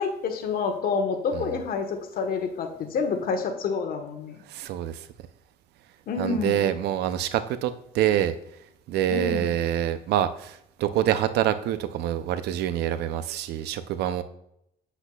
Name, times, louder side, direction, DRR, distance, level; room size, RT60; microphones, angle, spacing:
voice 1, 0.0-4.4 6.1-6.7 9.1-9.5, left 5 dB, 60° left, 5 dB, 1.2 m, -28 dB
voice 2, 4.5-5.1 6.2-8.3 8.9-14.2, right 11 dB, 75° right, 12 dB, 0.6 m, -26 dB
8.1 x 8.0 x 2.3 m, 0.76 s
cardioid pair, 110°, 17 cm